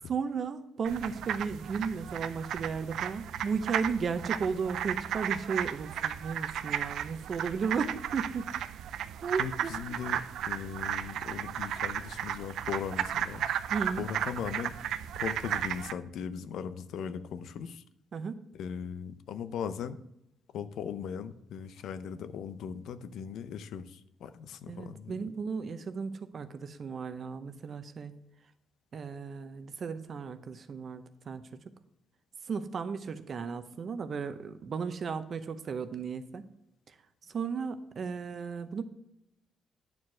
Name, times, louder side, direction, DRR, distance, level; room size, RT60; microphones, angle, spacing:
voice 1, 0.1-8.5 9.2-10.0 13.7-14.1 18.1-18.4 24.7-28.1 28.9-31.6 32.5-36.4 36.9-37.0 37.3-38.8, right 5 dB, 50° right, 11 dB, 0.7 m, -35 dB
sound 1, 0.8-15.9, right 10 dB, 75° right, 0.4 m, -34 dB
voice 2, 9.4-13.5 14.0-17.8 18.6-20.0 20.5-25.1, left 7 dB, 75° left, 12 dB, 0.6 m, -39 dB
9.5 x 4.5 x 6.2 m, 0.82 s
cardioid pair, 90°, 0 cm